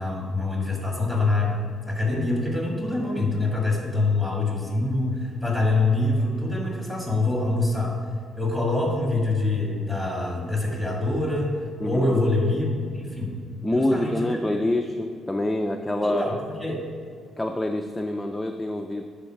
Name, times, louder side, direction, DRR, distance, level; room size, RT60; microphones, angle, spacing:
voice 1, 0.0-1.6 1.9-7.9 8.4-11.6 11.8-13.4 13.7-14.4 16.0-16.8, left 2 dB, 10° right, -1 dB, 1.6 m, -25 dB
voice 2, 11.8-12.2 13.6-16.4 17.4-19.0, left 1 dB, 10° left, 4 dB, 0.3 m, -26 dB
10.5 x 3.8 x 4.5 m, 2.2 s
cardioid pair, 125°, 0 cm